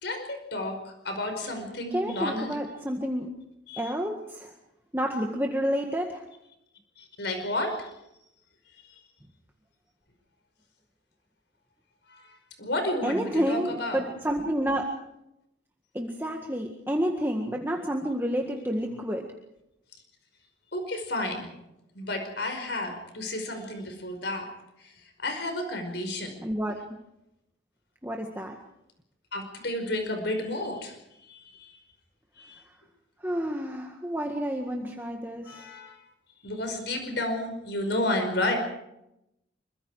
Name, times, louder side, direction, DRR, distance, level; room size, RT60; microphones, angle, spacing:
voice 1, 0.0-2.6 3.7-3.9 7.0-7.9 12.1-14.1 20.7-21.5 22.0-24.5 24.8-26.3 29.3-31.0 31.2-31.8 32.4-32.6 35.4-36.0 36.4-38.6, left 1 dB, 65° left, 5 dB, 5.2 m, -32 dB
voice 2, 1.9-3.3 3.8-4.5 4.9-6.2 13.0-14.9 15.9-19.3 26.4-26.8 28.0-28.6 33.2-35.7, equal, 10° right, 1 dB, 1.8 m, -29 dB
26.0 x 24.5 x 4.9 m, 0.84 s
head